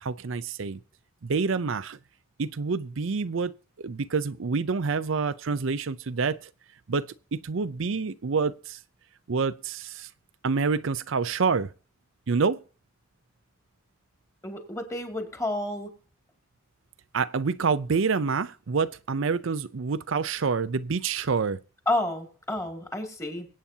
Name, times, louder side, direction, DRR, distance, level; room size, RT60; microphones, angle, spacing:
voice 1, 0.0-0.8 1.2-2.0 2.4-3.5 3.8-6.5 6.9-8.8 9.3-10.1 10.4-11.7 12.3-12.6 17.1-21.6, right 5 dB, 65° right, 0.5 m, -27 dB
voice 2, 14.4-15.9 21.9-23.5, left 1 dB, 15° left, 2.5 m, -30 dB
24.0 x 8.6 x 2.8 m
head